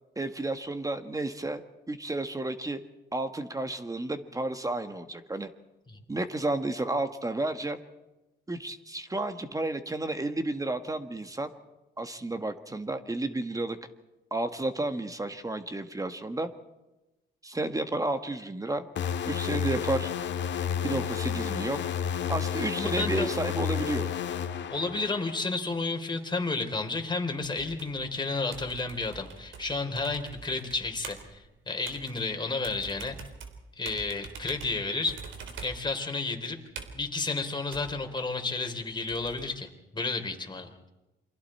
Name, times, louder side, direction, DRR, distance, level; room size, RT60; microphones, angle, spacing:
voice 1, 0.2-1.6 1.9-2.8 3.1-5.5 6.1-7.8 8.5-11.5 12.0-13.8 14.3-16.5 17.4-18.8 19.3-20.1 20.8-21.8 22.3-24.1, right 2 dB, 15° right, 9 dB, 1.5 m, -31 dB
sound 1, 19.0-25.4, left 8 dB, 65° left, 1.8 m, -31 dB
voice 2, 22.8-23.3 24.7-33.1 33.8-35.2 35.6-36.6 36.9-39.7 39.9-40.7, left 3 dB, 20° left, 4 dB, 3.4 m, -31 dB
sound 2, 27.4-39.5, right 5 dB, 75° right, 3.5 m, -45 dB
28.5 x 23.5 x 4.4 m, 1.0 s
cardioid pair, 90°, 20 cm